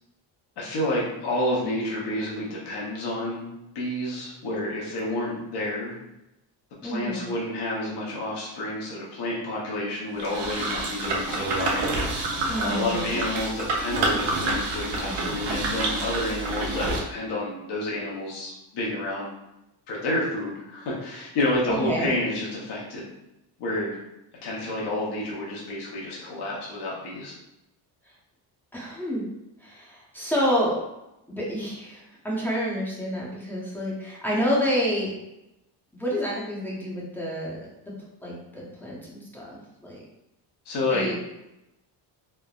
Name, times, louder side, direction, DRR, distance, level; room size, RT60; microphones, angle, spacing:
voice 1, 0.6-3.5 3.7-6.0 6.8-11.8 12.6-19.3 19.9-23.1 23.6-24.0 24.4-27.3 40.6-41.1, left 1 dB, 60° left, -5 dB, 0.9 m, -29 dB
voice 2, 6.8-7.3 12.5-13.2 21.8-22.2 28.7-29.2 29.6-30.8 31.3-35.1 36.0-37.7 38.2-40.0 40.9-41.1, equal, 5° left, -6 dB, 0.7 m, -28 dB
sound 1, 10.2-17.0, right 2 dB, 75° right, 0.7 m, -28 dB
3.3 x 2.0 x 2.4 m, 0.91 s
cardioid pair, 115°, 45 cm